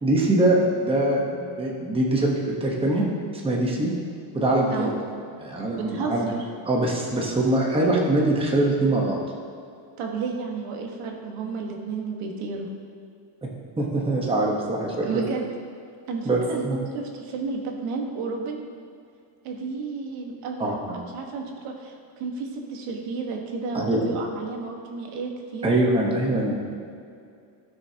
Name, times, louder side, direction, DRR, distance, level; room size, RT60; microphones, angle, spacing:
voice 1, 0.0-3.0 3.3-3.9 4.3-4.9 5.4-6.3 6.6-9.2 13.8-15.2 16.2-16.8 20.6-21.0 23.7-24.0 25.6-26.7, right 1 dB, 10° right, -2 dB, 1.1 m, -23 dB
voice 2, 5.7-6.5 10.0-12.7 15.0-15.4 16.1-18.7 19.4-25.8, right 4 dB, 80° right, 1 dB, 1.6 m, -32 dB
16.0 x 6.2 x 2.9 m, 2.4 s
cardioid pair, 155°, 50 cm